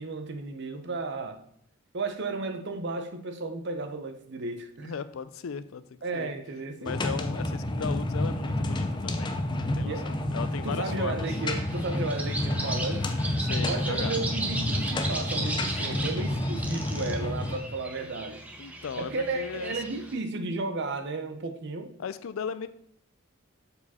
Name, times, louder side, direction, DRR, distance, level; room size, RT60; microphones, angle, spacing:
voice 1, 0.0-1.4 1.9-4.9 6.0-6.9 9.8-10.1 10.6-13.1 13.6-18.4 19.0-21.9, right 3 dB, 55° right, 7 dB, 0.7 m, -33 dB
voice 2, 4.8-6.3 6.8-9.3 9.6-11.3 13.4-14.2 18.6-19.8 22.0-22.7, left 6 dB, 75° left, 14 dB, 0.4 m, -37 dB
sound 1, 6.9-17.6, left 1 dB, 20° left, 0.5 m, -30 dB
sound 2, 11.2-20.1, right 2 dB, 5° right, 0.8 m, -36 dB
6.7 x 4.7 x 4.2 m, 0.68 s
head